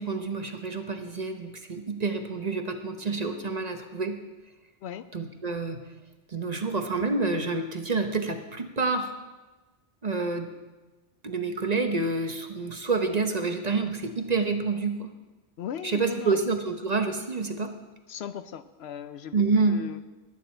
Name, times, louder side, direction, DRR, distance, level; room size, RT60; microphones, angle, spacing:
voice 1, 0.0-4.2 5.1-5.8 6.3-9.1 10.0-10.5 11.2-15.1 15.8-17.7 19.3-19.9, right 4 dB, 40° right, 6 dB, 0.9 m, -28 dB
voice 2, 15.6-16.4 18.1-20.0, left 9 dB, 70° left, 12 dB, 0.8 m, -38 dB
20.0 x 9.1 x 4.3 m, 1.2 s
omnidirectional pair, 1.2 m